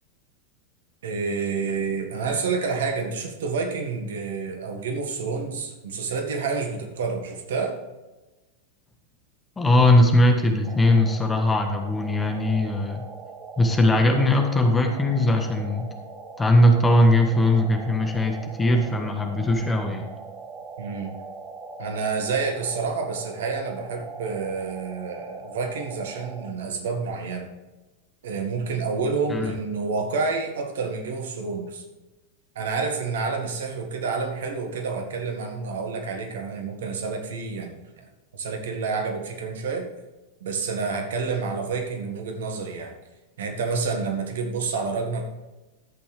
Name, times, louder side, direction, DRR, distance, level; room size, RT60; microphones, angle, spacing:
voice 1, 1.0-7.8 20.8-21.1 21.8-27.5 28.2-31.8 32.6-38.1 38.3-39.8 40.4-42.9 43.4-45.2, right 4 dB, 60° right, 3 dB, 1.8 m, -29 dB
voice 2, 9.6-13.0 13.6-15.9 16.4-20.1 29.3-29.5, left 1 dB, 15° left, 4 dB, 1.4 m, -20 dB
sound 1, 10.6-26.5, right 3 dB, 20° right, 1.3 m, -41 dB
12.0 x 8.5 x 3.4 m, 1.1 s
figure-of-eight pair, 90°, 0 cm